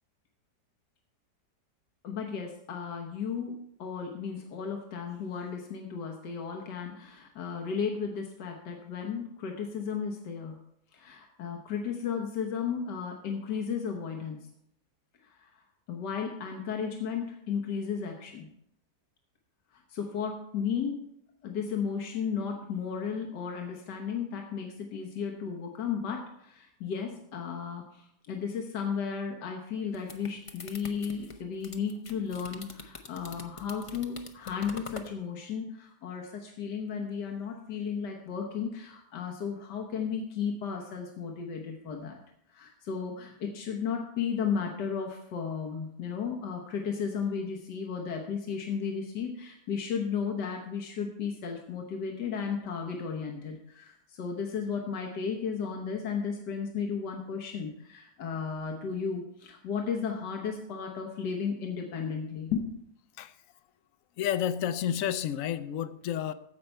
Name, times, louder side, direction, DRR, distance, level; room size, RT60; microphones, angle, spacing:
voice 1, 2.0-10.6 10.9-14.5 15.2-15.5 15.9-18.5 19.7-21.0 21.4-42.2 42.5-62.8, left 6 dB, 90° left, 1.7 m, -34 dB
sound 1, 29.7-35.1, left 4 dB, 50° left, 0.4 m, -45 dB
voice 2, 64.2-66.3, left 10 dB, 65° left, 0.8 m, -30 dB
15.0 x 5.4 x 4.5 m
omnidirectional pair, 1.8 m